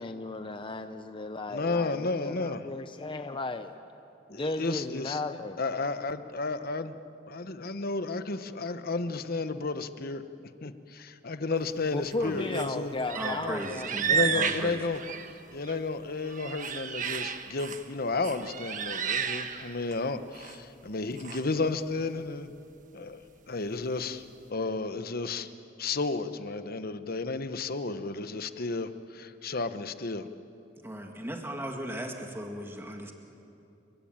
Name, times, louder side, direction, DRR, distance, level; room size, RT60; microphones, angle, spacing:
voice 1, 0.0-3.7 4.3-5.6 11.9-14.4, left 2 dB, 25° left, 8 dB, 0.7 m, -35 dB
voice 2, 1.5-2.6 4.3-5.2 5.6-7.0 7.3-10.2 10.6-12.9 14.1-15.0 15.5-22.5 22.9-23.2 23.5-24.2 24.5-25.5 25.8-30.3, left 3 dB, 55° left, 10 dB, 1.1 m, -32 dB
sound 1, 12.1-12.7 13.0-15.7 16.1-17.9 18.2-20.0 20.3-20.6 21.2-21.4, right 7 dB, 45° right, 1.4 m, -32 dB
voice 3, 13.2-14.8 30.8-33.1, right 1 dB, 15° right, 2 dB, 1.9 m, -37 dB
29.5 x 22.5 x 8.9 m, 2.8 s
head